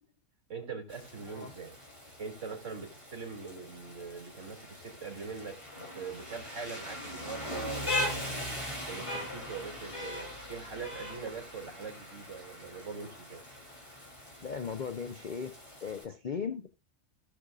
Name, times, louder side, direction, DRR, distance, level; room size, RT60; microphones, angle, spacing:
voice 1, 0.5-1.8 2.2-8.4 8.9-13.4, right 5 dB, 55° right, 2.8 m, -42 dB
Rain, 0.9-16.0, left 1 dB, 20° left, 3.0 m, -40 dB
voice 2, 14.4-16.7, left 6 dB, 55° left, 0.5 m, -37 dB
17.0 x 6.7 x 2.4 m
omnidirectional pair, 1.5 m